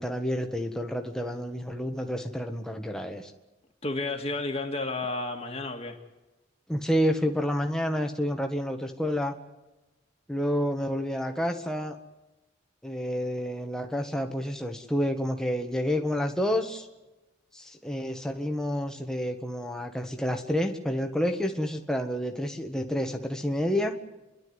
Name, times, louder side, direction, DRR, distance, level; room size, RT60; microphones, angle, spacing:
voice 1, 0.0-3.3 6.7-9.3 10.3-12.0 12.8-16.9 17.5-23.9, equal, 5° left, 3 dB, 1.5 m, -29 dB
voice 2, 3.8-6.0, left 2 dB, 30° left, 2 dB, 2.0 m, -31 dB
29.5 x 12.0 x 9.7 m, 1.1 s
head